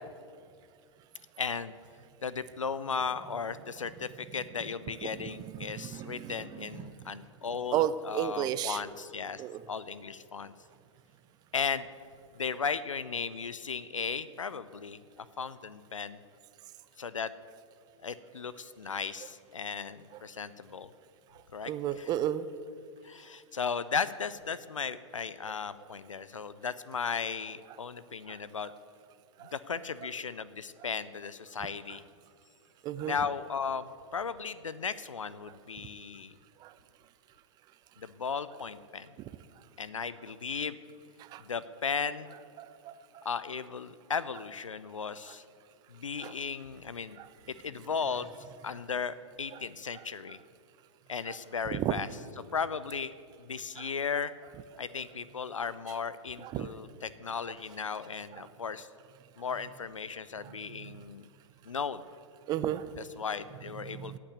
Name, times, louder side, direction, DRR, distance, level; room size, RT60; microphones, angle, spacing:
voice 1, 1.4-1.7 2.2-9.4 9.7-10.5 11.5-11.9 12.4-16.2 17.0-17.3 18.0-20.9 21.5-22.1 23.0-28.7 29.5-32.0 33.0-36.3 38.0-39.1 39.8-40.8 41.4-42.3 43.2-45.4 45.9-47.2 47.5-48.3 48.6-50.4 51.1-52.1 52.4-53.1 53.4-54.3 54.8-58.9 59.4-61.2 61.6-62.0 63.0-64.2, left 6 dB, 80° left, 16 dB, 0.6 m, -36 dB
voice 2, 5.6-6.3 7.7-8.8 9.4-9.6 21.7-22.4 29.4-29.5 32.8-33.1 36.6-36.7 41.3-41.4 42.6-42.9 46.2-46.3 47.2-47.3 51.7-51.9 56.4-56.7 62.5-62.8 64.1-64.2, right 11 dB, 25° right, 14 dB, 0.5 m, -32 dB
18.0 x 6.0 x 8.1 m, 2.2 s
figure-of-eight pair, 105°, 16 cm